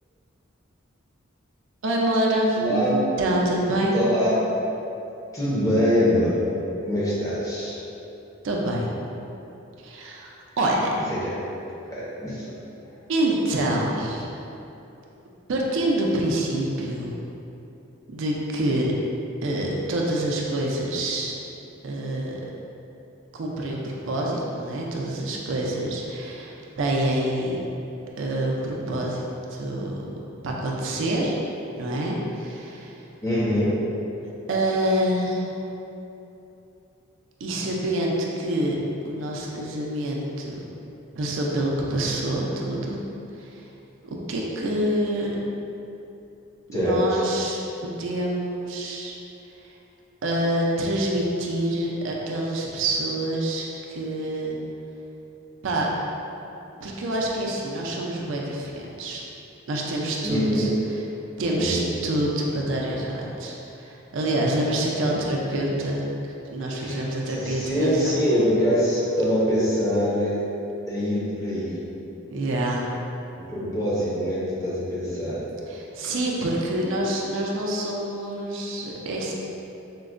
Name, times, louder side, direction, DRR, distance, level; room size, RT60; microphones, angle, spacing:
voice 1, 1.8-2.9 3.2-4.0 8.4-8.9 9.8-10.9 13.1-14.3 15.5-17.1 18.1-18.9 19.4-21.3 21.8-22.5 23.3-27.6 28.2-29.3 29.5-30.0 30.4-31.4 31.8-33.0 34.5-35.5 37.4-38.8 39.0-40.6 41.2-43.0 43.3-43.7 44.0-45.4 46.7-49.2 49.6-49.7 50.2-54.6 55.6-55.9 56.8-59.2 59.7-60.7 61.4-68.2 72.3-72.9 75.7-79.3, right 1 dB, 65° right, -2 dB, 0.4 m, -26 dB
voice 2, 2.6-3.0 3.9-4.4 5.3-6.3 6.8-7.8 11.2-11.3 11.9-12.4 33.2-33.7 46.7-47.3 60.2-60.7 61.5-61.9 65.0-65.2 66.7-67.0 67.4-70.4 70.9-71.7 73.3-75.4, equal, 15° left, -8 dB, 0.5 m, -24 dB
4.4 x 2.1 x 2.4 m, 2.9 s
head